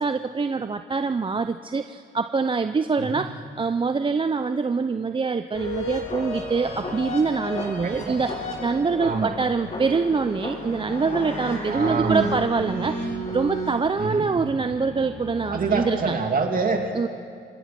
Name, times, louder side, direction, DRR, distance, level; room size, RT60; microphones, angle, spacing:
voice 1, 0.0-16.1 16.9-17.1, right 4 dB, 25° right, 9 dB, 0.6 m, -25 dB
sound 1, 5.5-16.5, equal, 35° left, 6.5 m, -33 dB
voice 2, 7.8-8.2 9.0-9.3 11.7-12.3 14.0-14.3 15.5-17.1, right 4 dB, 45° right, 3 dB, 2.8 m, -26 dB
28.5 x 17.0 x 6.0 m, 2.3 s
cardioid pair, 90°, 20 cm